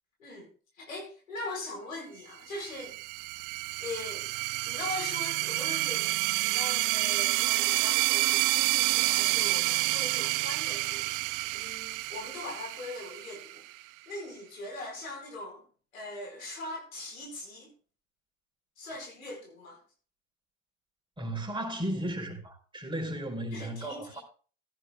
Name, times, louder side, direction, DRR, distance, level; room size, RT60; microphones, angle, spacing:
voice 1, 0.7-3.0 3.8-4.3 4.6-6.1 6.4-13.6 14.1-15.6 15.9-17.7 18.8-19.8 23.5-24.2, left 2 dB, 85° left, 5.2 m, -41 dB
sound 1, 2.5-13.8, right 22 dB, 50° right, 0.5 m, -29 dB
voice 2, 21.2-24.2, right 1 dB, 10° right, 4.9 m, -35 dB
16.0 x 14.0 x 2.3 m
hypercardioid pair, 60°, 39 cm